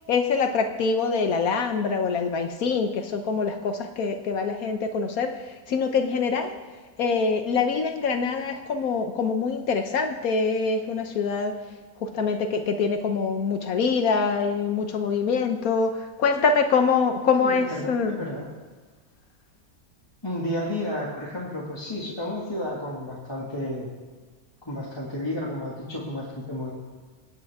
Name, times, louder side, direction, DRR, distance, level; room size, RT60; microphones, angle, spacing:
voice 1, 0.1-5.3 5.7-6.6 7.0-11.5 12.0-18.2, left 5 dB, 70° left, 6 dB, 1.3 m, -24 dB
voice 2, 17.4-18.5 20.2-23.9 24.7-26.7, left 1 dB, 15° left, -6 dB, 1.9 m, -32 dB
24.5 x 9.1 x 3.6 m, 1.4 s
omnidirectional pair, 1.6 m